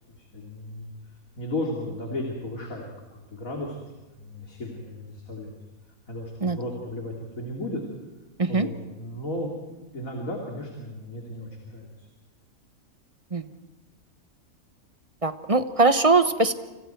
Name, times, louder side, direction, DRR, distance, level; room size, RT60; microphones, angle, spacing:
voice 1, 0.2-0.9 1.4-2.9 3.1-3.9 4.2-5.5 6.1-7.8 8.5-9.5 9.9-12.1, left 1 dB, 70° left, 0 dB, 3.6 m, -34 dB
voice 2, 15.2-16.5, right 3 dB, 25° right, 10 dB, 1.0 m, -21 dB
28.5 x 28.5 x 4.6 m, 1.2 s
omnidirectional pair, 1.5 m